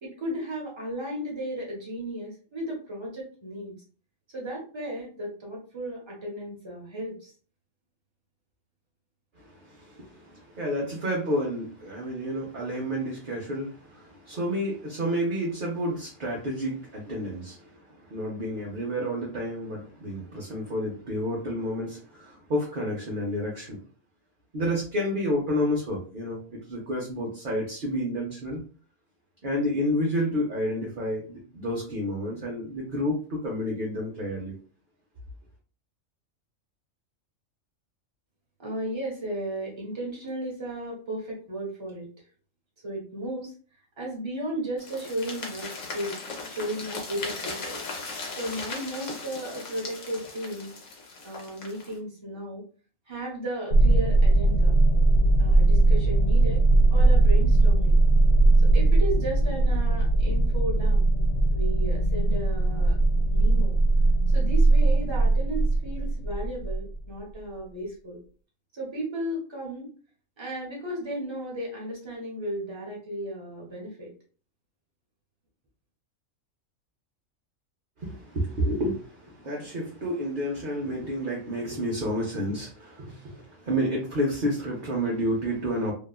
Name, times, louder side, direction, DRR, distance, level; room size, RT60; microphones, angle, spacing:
voice 1, 0.0-3.8 4.3-7.3 38.6-42.1 42.8-43.5 44.0-46.2 46.5-47.8 48.4-50.7 51.2-52.6 53.1-54.7 55.4-56.6 56.9-57.9 58.6-61.1 61.5-63.0 63.3-63.8 64.3-68.2 68.7-69.9 70.4-74.1, right 1 dB, 25° right, -3 dB, 0.9 m, -35 dB
voice 2, 9.4-23.8 24.5-28.6 29.4-34.6 78.0-85.9, equal, 50° right, -2 dB, 0.7 m, -30 dB
sound 1, 44.8-52.0, left 3 dB, 65° left, 1.1 m, -38 dB
sound 2, 53.7-67.0, right 2 dB, 90° left, 1.0 m, -20 dB
2.8 x 2.3 x 2.2 m, 0.39 s
omnidirectional pair, 1.4 m